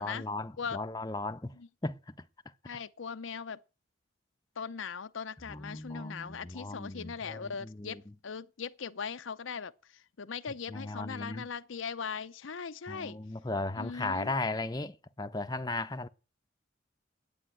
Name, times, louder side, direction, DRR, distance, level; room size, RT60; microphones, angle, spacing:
voice 1, 0.0-1.5 1.8-2.0 5.5-8.0 10.7-11.5 12.9-16.1, left 2 dB, 20° left, 0.7 m, -36 dB
voice 2, 2.6-3.6 4.6-13.2 13.8-14.4, left 6 dB, 85° left, 0.7 m, -40 dB
10.0 x 8.7 x 10.0 m
head